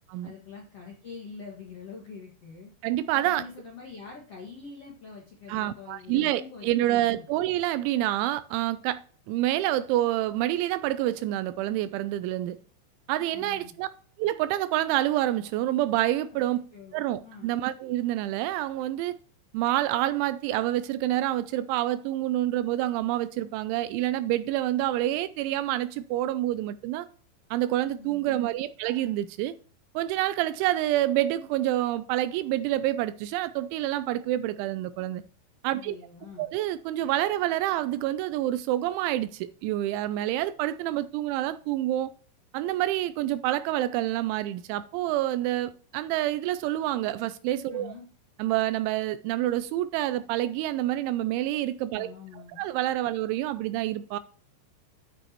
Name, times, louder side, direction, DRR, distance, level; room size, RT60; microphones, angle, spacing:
voice 1, 0.2-2.7 3.1-7.2 13.1-13.7 16.3-16.4 16.7-17.5 27.8-28.4 35.8-36.4 47.7-48.0 51.9-52.6 53.1-53.2, left 5 dB, 65° left, 1.5 m, -45 dB
voice 2, 2.8-3.4 5.5-9.0 9.3-12.6 13.1-13.9 14.2-16.7 16.9-19.2 19.5-27.1 27.5-29.5 30.0-35.2 35.6-36.0 36.4-42.1 42.5-47.9 48.4-52.1 52.6-54.2, right 14 dB, 85° right, 2.8 m, -27 dB
9.9 x 9.1 x 3.0 m
omnidirectional pair, 5.6 m